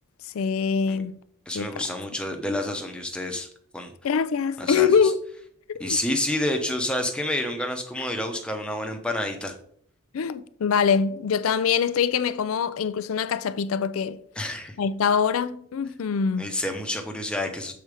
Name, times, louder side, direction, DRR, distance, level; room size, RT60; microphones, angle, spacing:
voice 1, 0.3-1.1 1.5-1.8 4.0-5.2 5.7-6.0 10.1-14.2 14.8-16.5, left 6 dB, 85° left, 0.4 m, -24 dB
voice 2, 1.5-3.5 3.7-3.9 4.6-5.1 5.8-9.5 14.4-14.8 16.4-17.7, left 1 dB, 5° left, 0.8 m, -29 dB
6.8 x 4.3 x 4.8 m
head